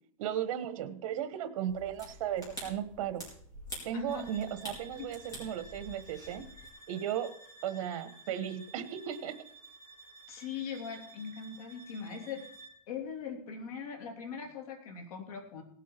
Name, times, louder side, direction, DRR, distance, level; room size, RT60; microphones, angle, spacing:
voice 1, 0.2-3.2 3.8-6.4 6.9-7.3 7.6-9.4, right 9 dB, 60° right, 11 dB, 1.3 m, -35 dB
sound 1, 1.7-6.7, right 1 dB, 20° left, 4.5 m, -47 dB
voice 2, 3.9-4.3 5.0-5.1 10.3-12.4 12.9-15.6, left 6 dB, 75° left, 2 dB, 3.2 m, -41 dB
sound 2, 4.1-12.9, right 2 dB, 35° left, 6.7 m, -53 dB
18.0 x 8.4 x 4.5 m, 0.64 s
supercardioid pair, 165°, 19 cm